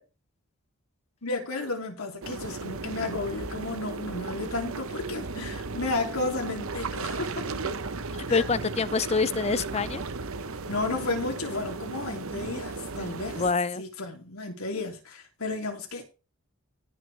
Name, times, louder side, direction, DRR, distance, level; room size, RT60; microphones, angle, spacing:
voice 1, 1.2-7.5 8.3-8.5 10.7-13.4 13.8-16.0, left 3 dB, 75° left, 3.0 m, -33 dB
sound 1, 2.2-13.5, right 3 dB, 70° right, 0.9 m, -35 dB
voice 2, 8.3-10.0 13.4-13.8, left 4 dB, 30° left, 0.5 m, -26 dB
18.0 x 6.2 x 3.4 m
head